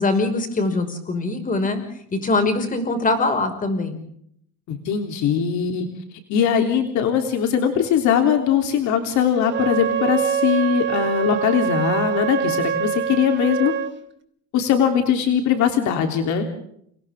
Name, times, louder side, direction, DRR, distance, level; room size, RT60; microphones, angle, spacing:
voice 1, 0.0-1.8 2.2-4.0, left 2 dB, 25° left, 7 dB, 5.7 m, -22 dB
voice 2, 4.7-5.9 6.3-13.7 14.5-16.5, left 8 dB, 65° left, 5 dB, 3.5 m, -20 dB
Wind instrument woodwind instrument, 9.4-13.9, right 8 dB, 40° right, 2.2 m, -24 dB
29.5 x 29.5 x 3.7 m, 0.68 s
cardioid pair, 125°, 30 cm